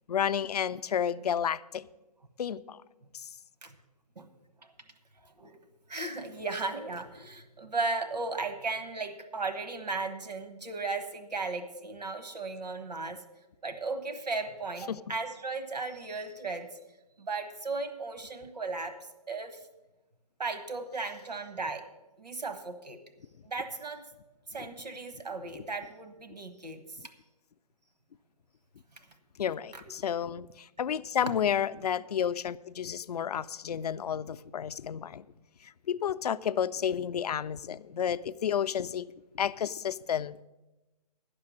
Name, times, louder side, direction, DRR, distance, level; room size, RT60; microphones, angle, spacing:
voice 1, 0.1-1.9 2.4-2.8 3.1-3.3 14.9-15.0 29.4-35.2 35.9-39.1 39.3-40.4, left 8 dB, 70° left, 0.4 m, -31 dB
voice 2, 5.2-5.6 5.9-13.2 13.6-16.8 17.2-19.0 19.3-19.7 20.4-21.9 22.2-23.0 23.4-24.1 24.5-27.1 29.7-29.8, right 3 dB, 85° right, 1.1 m, -36 dB
9.8 x 6.8 x 8.4 m
figure-of-eight pair, 135°, 21 cm